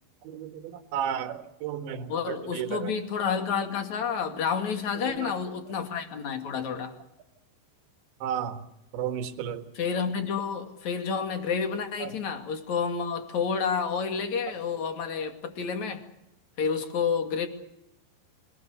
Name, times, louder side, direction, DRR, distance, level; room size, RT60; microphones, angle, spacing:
voice 1, 0.3-2.9 5.0-5.3 8.2-8.6 8.9-9.6, right 9 dB, 75° right, 4.0 m, -33 dB
voice 2, 2.1-6.9 9.7-16.0 16.6-17.5, left 6 dB, 50° left, 3.0 m, -29 dB
27.0 x 20.0 x 6.7 m
omnidirectional pair, 5.3 m